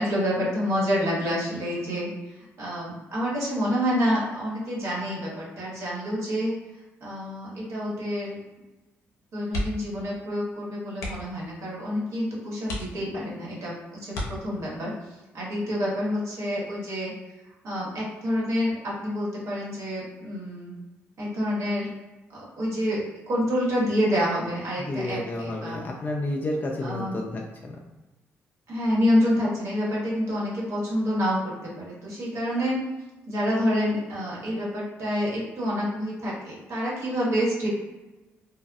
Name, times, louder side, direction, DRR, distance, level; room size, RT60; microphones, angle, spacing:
voice 1, 0.0-2.1 2.6-6.5 7.0-8.4 9.3-14.9 15.3-17.1 17.6-20.7 21.2-21.9 22.3-25.8 26.8-27.2 28.7-32.8 33.3-37.7, equal, 65° right, -6 dB, 1.2 m, -27 dB
sound 1, 9.5-10.0 10.3-10.5 10.9-11.4 12.0-12.1 12.6-13.4 14.1-14.9 16.4-16.7 17.1-17.2, left 1 dB, 85° left, 0.5 m, -34 dB
voice 2, 24.8-27.8, left 1 dB, 35° left, -1 dB, 0.4 m, -31 dB
2.3 x 2.2 x 2.5 m, 1.1 s
supercardioid pair, 65°, 5 cm